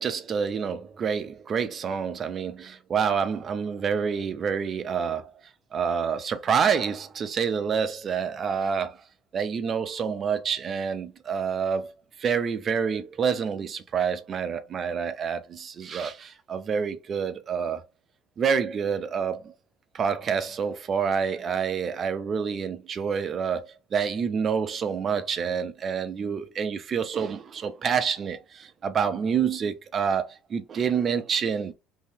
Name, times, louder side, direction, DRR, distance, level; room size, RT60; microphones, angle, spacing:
voice 1, 0.0-5.3 5.7-9.0 9.3-11.9 12.2-17.8 18.4-19.5 19.9-31.7, right 6 dB, 25° right, 0.4 m, -27 dB
2.7 x 2.7 x 3.3 m
cardioid pair, 180°, 0 cm